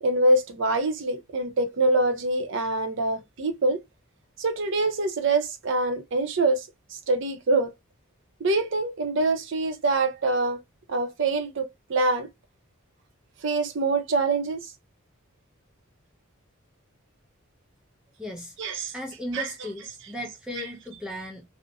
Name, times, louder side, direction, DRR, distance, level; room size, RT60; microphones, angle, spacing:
voice 1, 0.0-3.8 4.4-7.7 8.4-10.6 10.9-12.3 13.4-14.7 18.6-18.9 19.3-19.5 20.6-20.7, right 2 dB, 60° right, 0.6 m, -25 dB
voice 2, 18.2-18.5 18.9-21.4, left 1 dB, 5° right, 0.4 m, -36 dB
2.6 x 2.0 x 2.6 m
head